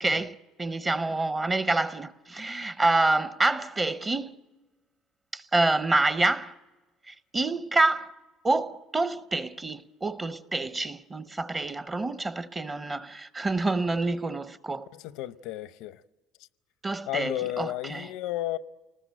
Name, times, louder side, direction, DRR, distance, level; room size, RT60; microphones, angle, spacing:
voice 1, 0.0-4.3 5.3-6.5 7.1-8.1 8.4-14.9 16.8-18.0, right 2 dB, 20° right, 0.7 m, -27 dB
voice 2, 14.9-16.0 16.4-16.5 17.1-18.6, left 14 dB, 80° left, 0.7 m, -33 dB
29.0 x 19.5 x 7.6 m
cardioid pair, 130°, 0 cm